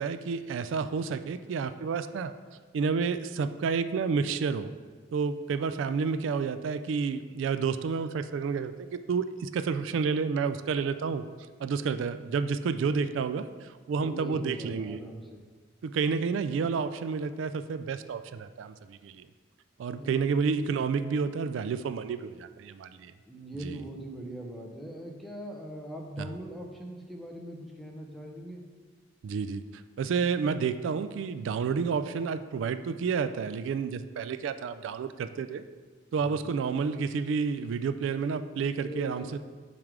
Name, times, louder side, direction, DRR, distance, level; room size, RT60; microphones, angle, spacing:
voice 1, 0.0-2.3 2.7-4.7 5.1-11.3 11.6-15.0 15.8-19.3 19.8-23.1 23.6-23.8 26.2-26.3 29.2-29.6 30.0-35.6 36.1-39.4, right 5 dB, 85° right, 12 dB, 0.3 m, -30 dB
voice 2, 14.0-15.4 19.9-20.2 23.3-28.6 36.2-36.6 38.8-39.4, right 1 dB, ahead, 0 dB, 0.7 m, -41 dB
7.2 x 3.3 x 4.8 m, 1.5 s
head